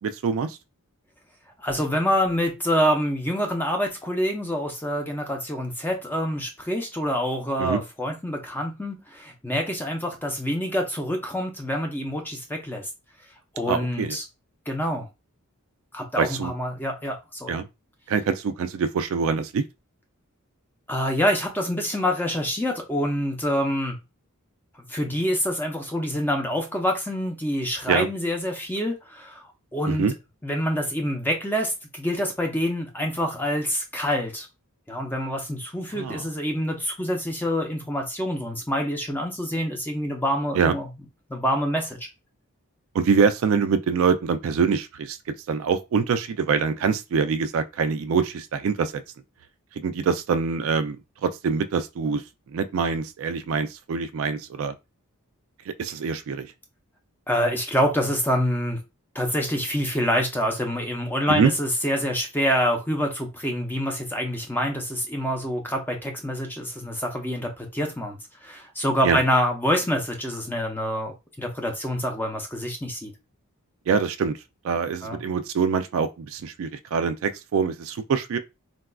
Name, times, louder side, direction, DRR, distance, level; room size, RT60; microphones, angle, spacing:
voice 1, 0.0-0.6 7.6-7.8 13.7-14.2 16.2-16.5 17.5-17.6 18.1-19.6 27.9-28.1 29.9-30.1 36.0-36.2 40.5-40.7 42.9-45.2 45.5-49.0 49.8-52.2 52.5-54.7 55.7-56.5 61.3-61.5 69.0-69.2 73.9-74.4 74.6-78.4, right 5 dB, 65° right, 0.3 m, -24 dB
voice 2, 1.6-12.9 13.5-14.2 14.7-15.1 15.9-17.5 20.9-24.0 24.9-30.1 30.4-34.5 34.9-40.9 41.3-42.0 57.3-58.8 59.1-68.2 68.4-73.1 75.0-75.2, equal, 10° left, 0.6 m, -26 dB
3.9 x 2.3 x 2.2 m
head